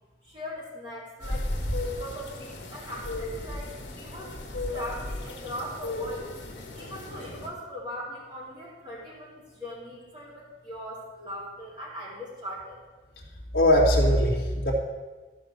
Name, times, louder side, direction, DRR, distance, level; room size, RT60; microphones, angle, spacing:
voice 1, 0.2-1.5 1.8-4.4 4.7-6.3 6.7-12.8, equal, 25° right, -7 dB, 3.9 m, -40 dB
sound 1, 1.2-7.5, left 1 dB, 70° left, 2.0 m, -35 dB
voice 2, 13.5-14.7, left 1 dB, 55° left, -4 dB, 2.3 m, -20 dB
14.0 x 5.5 x 6.6 m, 1.3 s
head